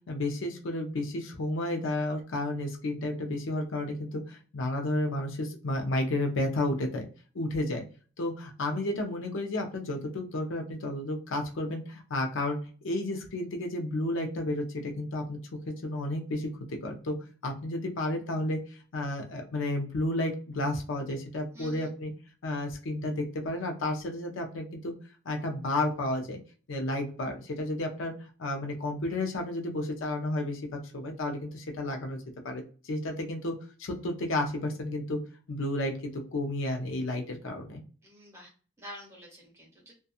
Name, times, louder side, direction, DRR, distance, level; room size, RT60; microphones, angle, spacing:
voice 1, 0.1-7.1 7.3-7.8 8.2-12.6 12.8-15.4 15.7-16.5 16.8-17.1 17.4-18.6 18.9-22.1 22.4-24.9 25.3-26.4 26.7-33.5 33.8-35.2 35.5-37.8, left 1 dB, 65° left, 3 dB, 0.5 m, -32 dB
voice 2, 21.5-21.9 38.0-38.5 38.8-39.9, equal, 15° right, -3 dB, 1.2 m, -47 dB
2.7 x 2.3 x 2.3 m, 0.38 s
head